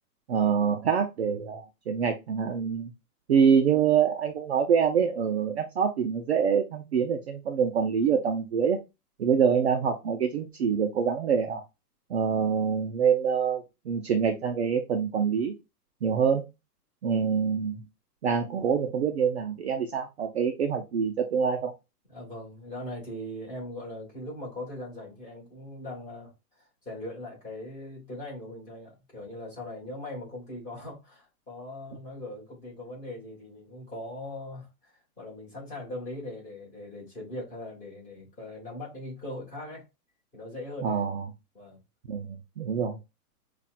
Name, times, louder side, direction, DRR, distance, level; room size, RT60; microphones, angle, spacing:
voice 1, 0.3-2.9 3.3-8.8 9.2-11.6 12.1-15.5 16.0-16.4 17.0-17.8 18.2-21.7 40.8-41.2 42.1-43.0, right 7 dB, 45° right, 0.5 m, -25 dB
voice 2, 22.1-26.3 26.6-39.8 40.3-41.0 41.5-41.8, left 1 dB, 15° left, 1.7 m, -40 dB
5.5 x 2.4 x 2.4 m
hypercardioid pair, 165°, 49 cm